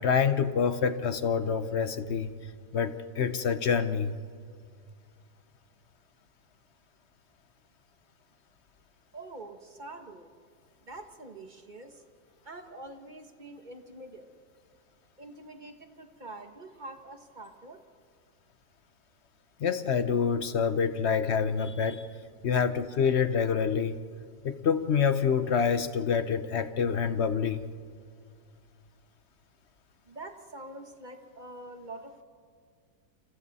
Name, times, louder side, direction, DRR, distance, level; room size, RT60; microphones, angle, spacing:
voice 1, 0.0-4.1 19.6-22.1 22.4-24.0 24.4-27.6, left 6 dB, 55° left, 12 dB, 0.8 m, -27 dB
voice 2, 9.1-10.3 10.8-12.0 12.4-14.3 15.2-17.8 30.0-32.2, right 2 dB, 30° right, 6 dB, 1.3 m, -45 dB
28.5 x 27.5 x 4.1 m, 2.1 s
omnidirectional pair, 1.9 m